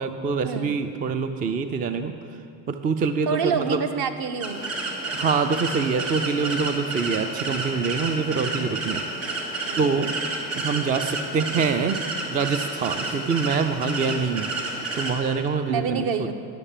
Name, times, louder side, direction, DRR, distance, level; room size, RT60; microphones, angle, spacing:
voice 1, 0.0-2.1 2.7-3.8 5.1-9.0 9.8-10.1 10.6-12.0 12.3-16.1, right 5 dB, 20° right, 8 dB, 0.3 m, -25 dB
voice 2, 3.3-4.7 9.6-10.1 15.7-16.3, right 6 dB, 45° right, 7 dB, 1.0 m, -27 dB
sound 1, 4.4-15.1, right 2 dB, 80° right, 2.4 m, -30 dB
11.5 x 6.6 x 7.3 m, 2.4 s
hypercardioid pair, 85°, 49 cm